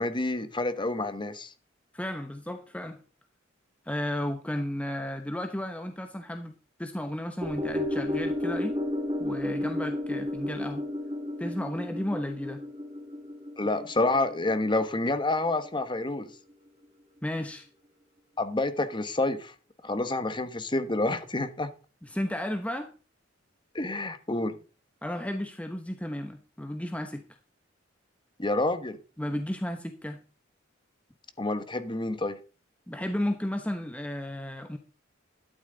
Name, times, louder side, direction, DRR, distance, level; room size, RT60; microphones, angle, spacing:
voice 1, 0.0-1.5 13.6-16.3 18.4-19.5 19.8-21.7 23.7-24.6 28.4-29.0 31.4-32.4, left 2 dB, 25° left, 1.2 m, -28 dB
voice 2, 1.9-3.0 3.9-6.5 6.8-8.8 9.2-10.8 11.4-12.6 17.2-17.7 22.0-22.9 25.0-27.2 29.2-30.2 32.9-34.8, left 1 dB, 5° left, 0.9 m, -33 dB
sound 1, 7.4-15.8 16.2-16.3, left 1 dB, 25° right, 2.0 m, -33 dB
13.0 x 11.5 x 3.9 m
head